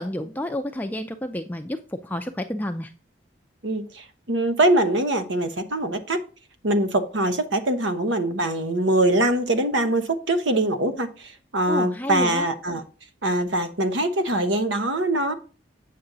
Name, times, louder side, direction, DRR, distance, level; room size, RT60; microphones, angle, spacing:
voice 1, 0.0-2.9 11.7-12.5, left 1 dB, 10° left, 0.4 m, -30 dB
voice 2, 3.6-6.2 6.6-12.8 13.2-15.3, right 1 dB, 80° right, 1.0 m, -23 dB
8.7 x 6.8 x 3.9 m
head